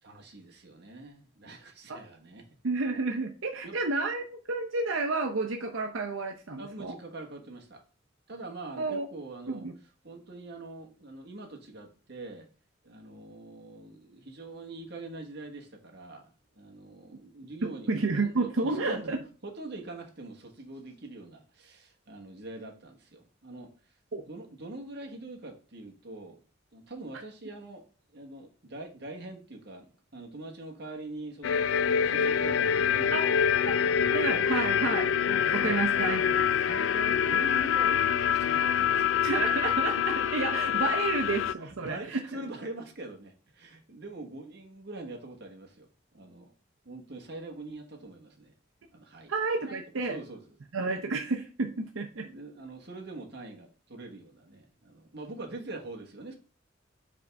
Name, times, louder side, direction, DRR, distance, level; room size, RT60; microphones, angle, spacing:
voice 1, 0.0-2.5 3.6-3.8 6.6-7.8 8.3-9.7 10.0-12.5 12.8-17.9 18.2-19.1 19.4-23.7 24.1-26.4 26.7-27.8 28.1-33.2 35.5-35.8 36.7-39.4 40.8-40.9 41.6-46.5 46.8-48.5 48.9-49.3 49.6-50.6 52.2-56.3, right 2 dB, 55° right, 1.4 m, -44 dB
voice 2, 2.6-7.0 8.8-9.1 9.5-9.7 17.6-19.2 24.1-24.2 33.1-33.2 33.6-33.8 34.1-36.2 39.2-42.2 49.3-50.2 50.7-52.3, right 3 dB, 85° right, 0.7 m, -30 dB
sound 1, 31.4-41.5, left 8 dB, 70° left, 0.3 m, -26 dB
5.2 x 3.5 x 5.2 m
head